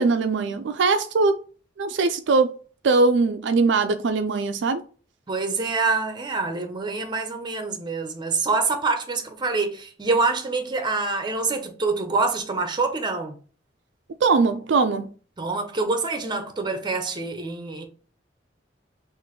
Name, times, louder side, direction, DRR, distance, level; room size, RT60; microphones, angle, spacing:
voice 1, 0.0-1.3 1.8-2.5 2.8-4.8 14.2-15.1, right 4 dB, 65° right, 0.4 m, -21 dB
voice 2, 5.3-13.4 15.4-17.9, right 3 dB, 25° right, 0.7 m, -26 dB
6.0 x 2.6 x 3.0 m
head